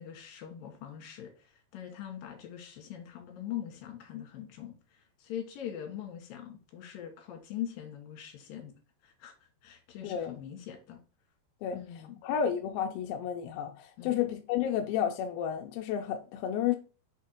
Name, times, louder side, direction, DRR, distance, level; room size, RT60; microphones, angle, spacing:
voice 1, 0.0-8.7 9.0-9.3 9.6-11.0 11.7-12.2 14.0-14.2, left 10 dB, 65° left, 2.9 m, -42 dB
voice 2, 10.0-10.4 11.6-11.8 12.2-16.8, left 9 dB, 80° left, 2.2 m, -31 dB
6.3 x 3.6 x 4.4 m
omnidirectional pair, 4.9 m